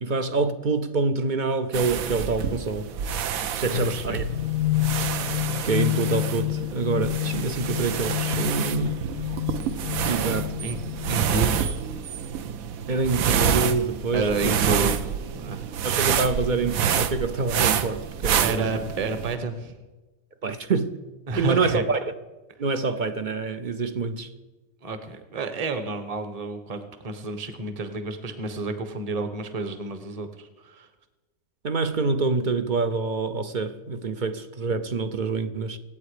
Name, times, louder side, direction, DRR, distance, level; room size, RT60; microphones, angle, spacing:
voice 1, 0.0-2.9 3.5-4.2 5.6-9.0 10.0-10.5 12.9-14.6 15.8-18.9 20.4-21.0 21.4-22.1 22.6-24.3 31.6-35.8, right 4 dB, 45° right, 0.6 m, -26 dB
sound 1, 1.7-19.3, right 8 dB, 65° right, 1.1 m, -28 dB
sound 2, 3.7-11.5, left 15 dB, 75° left, 1.1 m, -29 dB
voice 2, 3.7-4.2 10.6-10.8 11.1-11.8 14.1-15.7 18.4-19.8 21.3-21.8 24.8-30.9, right 3 dB, 25° right, 1.1 m, -30 dB
25.5 x 8.5 x 5.0 m
omnidirectional pair, 1.6 m